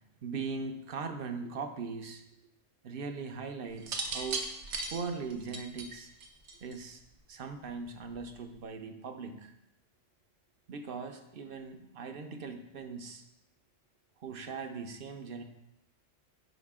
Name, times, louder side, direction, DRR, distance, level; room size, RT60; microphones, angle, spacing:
voice 1, 0.2-2.2 2.8-4.4 4.8-6.1 6.6-7.0 7.3-9.5 10.7-13.2 14.2-15.4, right 4 dB, 55° right, 7 dB, 0.8 m, -40 dB
sound 1, 3.8-6.9 8.0-8.4, right 3 dB, 70° right, 1.1 m, -37 dB
9.5 x 4.9 x 3.6 m, 0.85 s
omnidirectional pair, 1.3 m